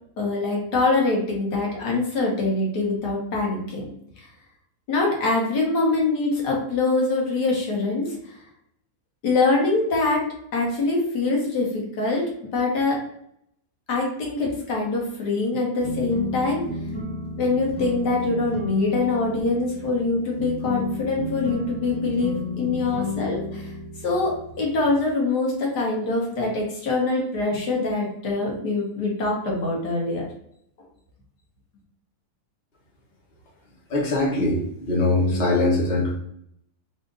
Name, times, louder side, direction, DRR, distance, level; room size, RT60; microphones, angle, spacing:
voice 1, 0.2-3.9 4.9-8.3 9.2-10.3 10.5-13.0 13.9-16.6 17.4-23.7 24.0-30.2, left 3 dB, 80° left, -2 dB, 1.7 m, -24 dB
sound 1, 15.8-25.1, left 3 dB, 5° left, 0.6 m, -33 dB
voice 2, 33.9-36.1, left 2 dB, 30° left, -3 dB, 1.1 m, -22 dB
3.5 x 2.7 x 3.8 m, 0.71 s
omnidirectional pair, 1.8 m